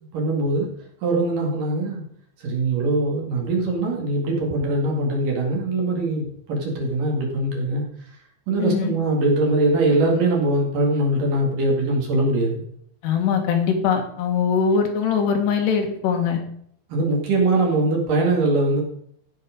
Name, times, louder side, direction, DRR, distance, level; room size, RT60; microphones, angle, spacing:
voice 1, 0.1-0.7 1.0-2.0 2.4-7.8 8.5-12.6 16.9-18.8, right 2 dB, 60° right, -1 dB, 3.5 m, -22 dB
voice 2, 8.6-8.9 13.0-16.4, left 6 dB, 90° left, 4 dB, 3.7 m, -21 dB
15.5 x 6.0 x 5.1 m, 0.66 s
omnidirectional pair, 4.7 m